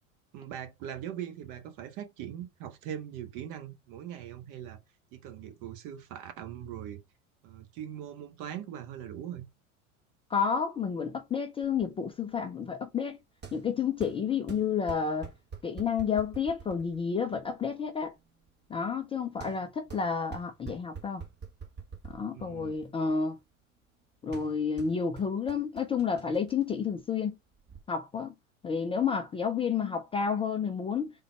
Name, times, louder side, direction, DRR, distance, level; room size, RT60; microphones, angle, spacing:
voice 1, 0.3-4.8 5.1-7.0 7.4-9.5 22.3-22.7, right 10 dB, 45° right, 0.9 m, -41 dB
voice 2, 10.3-13.2 13.5-15.3 15.6-18.1 18.7-21.2 22.1-23.4 24.2-27.3 27.9-28.3 28.6-31.1, left 6 dB, 15° left, 0.4 m, -30 dB
sound 1, 11.6-27.8, right 6 dB, 25° right, 1.1 m, -48 dB
3.8 x 2.2 x 4.1 m
hypercardioid pair, 85°, 41 cm